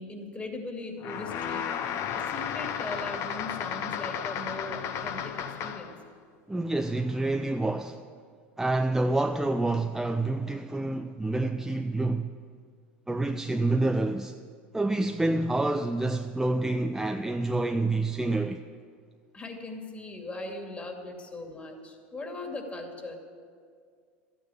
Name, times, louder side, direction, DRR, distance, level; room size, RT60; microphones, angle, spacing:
voice 1, 0.0-5.9 19.3-23.1, left 2 dB, 20° left, 2.4 m, -39 dB
sound 1, 1.0-6.0, left 8 dB, 50° left, 0.9 m, -33 dB
voice 2, 6.5-8.0 8.6-12.3 13.1-14.4 14.7-18.6, right 2 dB, 5° right, 0.5 m, -27 dB
13.0 x 9.3 x 8.4 m
hypercardioid pair, 90°, 6 cm